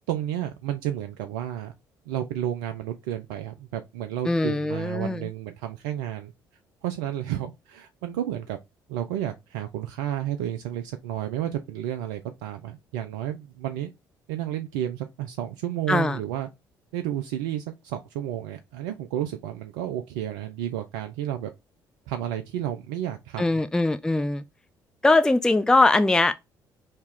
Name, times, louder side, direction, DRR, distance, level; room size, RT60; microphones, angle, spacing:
voice 1, 0.1-1.7 2.1-6.3 6.8-8.6 8.9-13.9 14.3-16.5 16.9-21.5 22.1-23.6, right 11 dB, 70° right, 0.4 m, -31 dB
voice 2, 4.3-5.2 15.9-16.2 23.4-24.4 25.0-26.4, left 2 dB, 5° left, 0.4 m, -21 dB
4.2 x 2.9 x 3.5 m
figure-of-eight pair, 50°, 11 cm